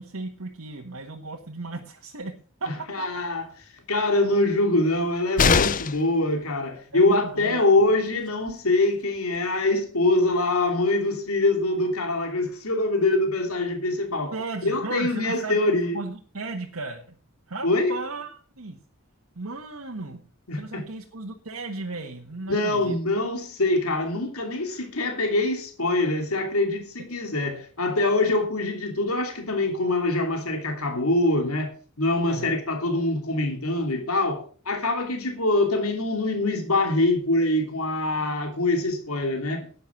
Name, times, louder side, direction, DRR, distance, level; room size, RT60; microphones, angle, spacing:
voice 1, 0.0-2.3 2.6-2.9 6.9-7.6 14.3-15.6 15.9-17.1 17.5-18.8 19.3-20.2 20.5-23.0 32.3-32.6, right 3 dB, 80° right, 1.6 m, -35 dB
voice 2, 2.6-3.5 3.9-14.3 14.6-16.0 17.6-17.9 20.5-20.8 22.5-31.7 32.0-39.6, left 2 dB, 80° left, 3.0 m, -24 dB
sound 1, 5.4-6.1 8.1-8.2 8.5-8.6, left 5 dB, 40° left, 0.6 m, -21 dB
11.5 x 9.6 x 6.0 m
head